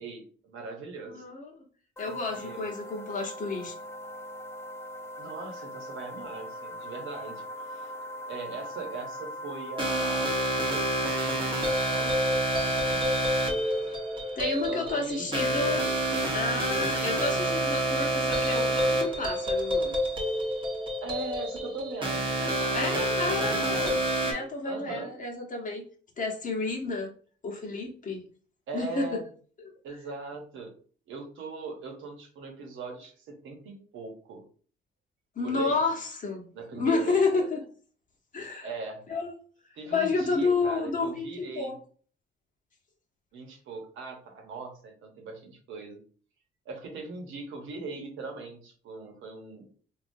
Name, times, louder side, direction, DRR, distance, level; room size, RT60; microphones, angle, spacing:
voice 1, 0.0-1.2 2.0-2.8 5.2-7.9 8.3-10.5 11.9-13.2 14.6-15.7 17.3-17.6 21.0-23.0 23.3-24.0 24.6-25.1 28.7-29.2 29.8-30.7 31.1-34.4 35.4-35.9 36.5-37.6 38.6-39.0 39.8-41.7 43.3-46.0 46.6-49.7, right 4 dB, 80° right, 2 dB, 1.0 m, -40 dB
voice 2, 1.0-1.6 2.0-3.8 14.4-15.9 16.3-20.0 22.7-24.0 24.2-25.8 26.2-27.1 27.4-28.3 28.7-29.1 29.6-29.8 35.3-36.5 36.7-37.6 38.3-38.7 39.1-39.3 39.9-41.8, left 3 dB, 40° left, 1 dB, 1.0 m, -30 dB
sound 1, 2.0-12.0, left 1 dB, 15° left, 0.4 m, -40 dB
sound 2, 9.8-24.3, right 1 dB, 25° right, 0.9 m, -28 dB
3.6 x 2.4 x 2.6 m, 0.43 s
cardioid pair, 90°, 20 cm